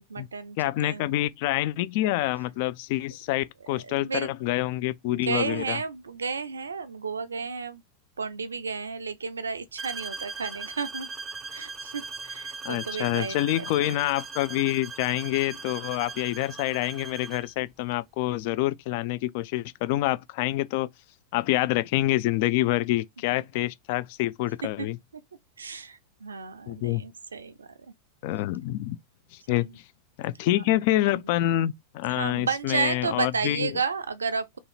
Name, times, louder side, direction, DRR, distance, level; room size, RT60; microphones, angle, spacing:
voice 1, 0.0-1.2 3.6-4.3 5.1-7.8 8.2-11.1 11.5-13.5 13.9-14.0 24.8-24.9 25.6-27.7 29.5-29.7 30.5-30.6 31.1-31.2 32.0-34.6, right 5 dB, 75° right, 0.5 m, -32 dB
voice 2, 0.6-5.8 12.6-20.9 21.3-25.0 26.7-27.0 28.2-29.0 29.3-29.8 30.2-33.7, left 16 dB, 50° left, 0.3 m, -27 dB
sound 1, 9.8-17.5, right 4 dB, 20° right, 0.4 m, -39 dB
3.0 x 2.7 x 4.1 m
figure-of-eight pair, 90°, 0 cm